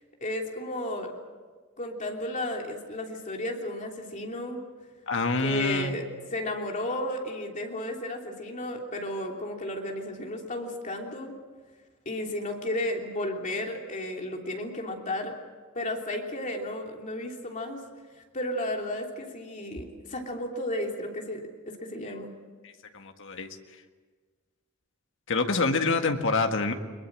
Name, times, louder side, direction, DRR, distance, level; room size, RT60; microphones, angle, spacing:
voice 1, 0.2-1.1 1.8-4.6 5.4-6.0 6.3-11.3 12.0-15.3 15.7-17.8 18.3-22.3, left 1 dB, 35° left, 1 dB, 3.2 m, -33 dB
voice 2, 5.1-6.0 22.9-23.5 25.3-26.7, left 3 dB, 65° left, 5 dB, 1.8 m, -26 dB
22.5 x 22.0 x 7.6 m, 1.5 s
head